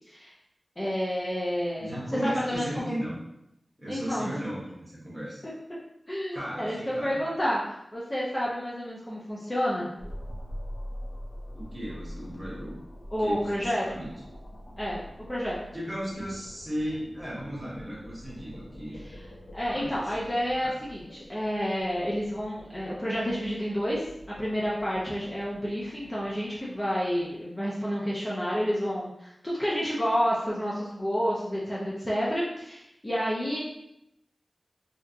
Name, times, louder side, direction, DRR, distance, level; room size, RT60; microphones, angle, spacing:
voice 1, 0.8-1.9 2.2-2.9 3.9-4.3 5.4-5.5 6.1-7.6 7.9-9.9 13.1-14.0 14.8-15.6 19.0-19.2 19.5-24.1 24.4-33.6, equal, 25° left, -7 dB, 0.5 m, -30 dB
voice 2, 1.8-3.2 3.8-5.4 6.3-7.2 11.5-12.7 13.2-14.1 15.7-19.0 19.7-19.9 20.6-20.7, equal, 15° right, -7 dB, 1.1 m, -35 dB
sound 1, 10.0-27.2, equal, 85° left, 0.6 m, -45 dB
2.8 x 2.3 x 2.4 m, 0.83 s
wide cardioid pair, 85°, 0 cm